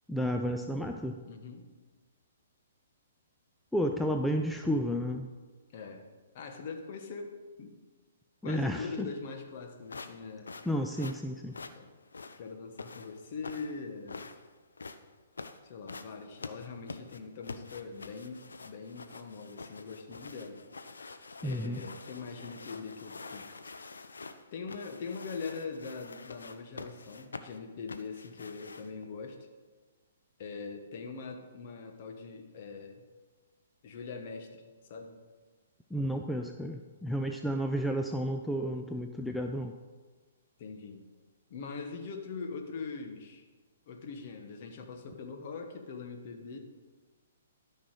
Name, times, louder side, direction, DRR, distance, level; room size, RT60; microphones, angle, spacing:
voice 1, 0.1-1.2 3.7-5.3 8.4-9.1 10.6-11.5 21.4-21.9 35.9-39.7, equal, 5° left, 4 dB, 0.4 m, -32 dB
voice 2, 1.2-1.7 5.7-6.1 6.3-7.7 8.4-10.5 11.7-11.9 12.4-14.3 15.6-20.6 21.4-23.8 24.5-29.4 30.4-33.0 33.8-35.2 40.6-41.1 41.5-43.4 43.9-46.6, left 4 dB, 45° left, 4 dB, 1.3 m, -42 dB
sound 1, 9.9-29.0, left 4 dB, 70° left, 0.6 m, -46 dB
12.5 x 5.8 x 4.7 m, 1.4 s
figure-of-eight pair, 120°, 0 cm